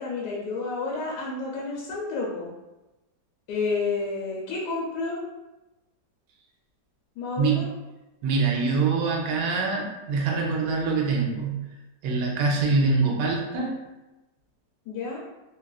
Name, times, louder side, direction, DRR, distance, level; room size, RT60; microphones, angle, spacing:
voice 1, 0.0-2.5 3.5-5.2 7.2-7.7 14.9-15.2, left 3 dB, 80° left, -4 dB, 1.2 m, -30 dB
voice 2, 7.4-7.7 8.2-11.7 12.0-13.7, right 4 dB, 90° right, -1 dB, 1.3 m, -24 dB
3.1 x 2.4 x 2.3 m, 1.0 s
omnidirectional pair, 1.8 m